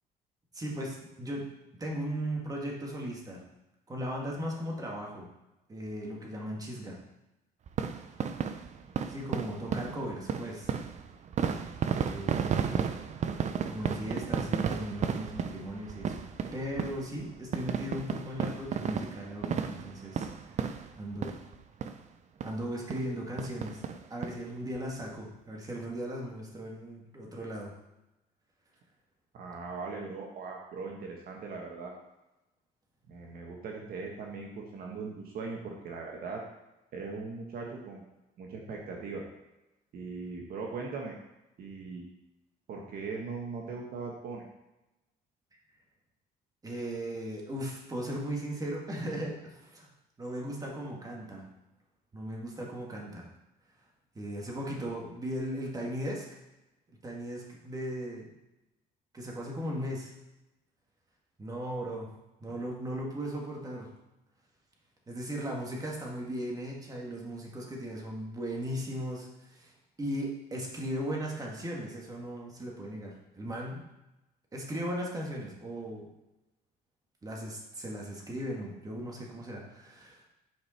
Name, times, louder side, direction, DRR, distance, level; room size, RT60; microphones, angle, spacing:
voice 1, 0.5-1.5 1.8-3.4 3.9-5.3 5.7-7.0 9.1-10.7 12.0-12.9 13.7-16.2 16.5-21.4 22.4-27.7 46.6-49.9 50.2-51.4 52.1-53.3 54.2-56.3 57.0-58.3 59.1-60.1 61.4-62.1 62.4-63.9 65.1-69.7 70.0-73.8 74.5-76.1 77.2-80.3, equal, 20° right, -2 dB, 2.1 m, -37 dB
sound 1, 7.7-21.5 21.8-22.0 22.4-22.5 22.9-23.1 23.4-24.3 24.7-24.8 25.0-25.1, right 7 dB, 45° right, 0.7 m, -33 dB
voice 2, 29.3-31.9 33.1-36.4 36.9-38.0 38.4-39.2 39.9-41.2 41.6-42.1 42.7-44.4, right 4 dB, 60° right, 0 dB, 1.5 m, -39 dB
9.5 x 5.1 x 4.4 m, 0.97 s
cardioid pair, 110°, 17 cm